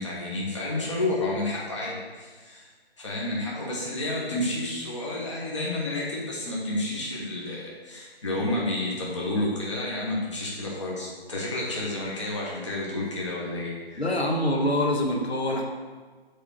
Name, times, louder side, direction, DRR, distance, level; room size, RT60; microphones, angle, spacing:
voice 1, 0.0-2.7 3.0-14.0, left 2 dB, 30° left, -5 dB, 1.2 m, -30 dB
voice 2, 14.0-15.6, left 1 dB, 80° left, 1 dB, 1.5 m, -25 dB
8.2 x 3.6 x 6.0 m, 1.4 s
figure-of-eight pair, 170°, 32 cm